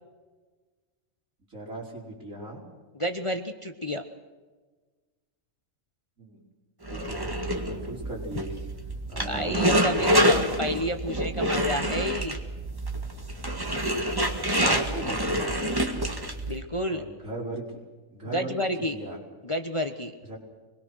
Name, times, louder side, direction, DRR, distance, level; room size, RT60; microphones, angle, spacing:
voice 1, 1.5-2.6 6.2-6.4 6.9-8.5 9.1-9.6 10.0-10.4 14.5-15.6 16.9-17.6 18.1-19.2 20.3-20.4, right 2 dB, 70° right, -1 dB, 5.3 m, -37 dB
voice 2, 2.9-4.0 9.2-12.4 16.5-17.0 18.2-19.0 19.4-20.1, equal, 25° left, 7 dB, 1.1 m, -30 dB
sound 1, 6.9-16.6, equal, 15° right, 1.9 m, -27 dB
26.0 x 21.5 x 6.3 m, 1.3 s
omnidirectional pair, 1.4 m